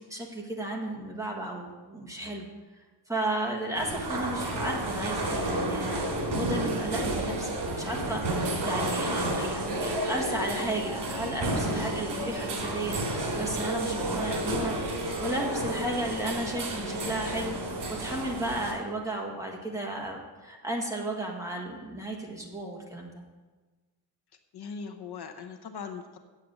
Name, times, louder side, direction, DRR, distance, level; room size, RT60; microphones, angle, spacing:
voice 1, 0.1-2.5 3.1-23.1, right 1 dB, 10° right, -1 dB, 1.5 m, -34 dB
sound 1, 3.7-18.7, right 1 dB, 75° right, 2.7 m, -31 dB
voice 2, 24.5-26.2, left 5 dB, 70° left, 6 dB, 1.0 m, -40 dB
8.4 x 7.7 x 7.7 m, 1.3 s
wide cardioid pair, 175°, 41 cm